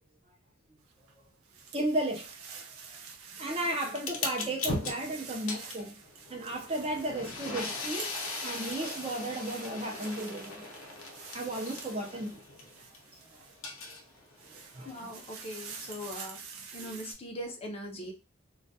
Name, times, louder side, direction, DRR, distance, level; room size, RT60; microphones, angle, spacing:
sound 1, 0.9-13.7 14.2-17.1, right 6 dB, 80° right, 0.5 m, -48 dB
voice 1, 1.7-2.6 3.4-6.0 6.3-10.7 11.3-12.4 14.4-15.0 16.7-17.0, right 1 dB, 25° right, 0.5 m, -34 dB
sound 2, 4.0-13.0 13.4-16.1, left 3 dB, 70° left, 0.7 m, -39 dB
voice 2, 14.8-16.4 16.7-18.1, equal, 25° left, 0.5 m, -40 dB
2.2 x 2.2 x 2.6 m
head